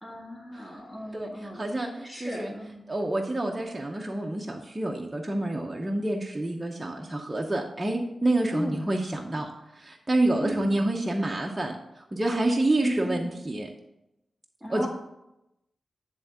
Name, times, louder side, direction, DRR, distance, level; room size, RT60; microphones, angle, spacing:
voice 1, 0.0-1.6 2.0-2.8 8.5-8.8 10.4-10.7 12.8-13.3 14.6-14.9, equal, 5° left, -4 dB, 1.7 m, -35 dB
voice 2, 1.1-2.5 2.9-13.7 14.7-14.9, right 1 dB, 15° right, 0 dB, 0.8 m, -28 dB
10.5 x 3.6 x 6.8 m, 0.89 s
wide cardioid pair, 105°, 0 cm